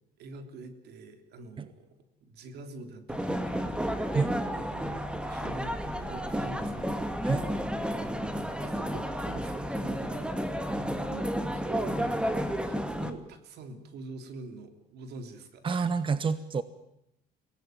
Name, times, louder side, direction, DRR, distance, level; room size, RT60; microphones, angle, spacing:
voice 1, 0.2-4.2 4.5-7.1 8.6-10.4 10.6-12.2 12.7-15.9, right 3 dB, 75° right, 8 dB, 3.3 m, -45 dB
sound 1, 3.1-13.1, equal, 5° right, 2.1 m, -32 dB
voice 2, 15.6-16.6, right 5 dB, 30° right, 14 dB, 1.0 m, -28 dB
24.0 x 18.0 x 9.2 m, 0.83 s
cardioid pair, 110°, 17 cm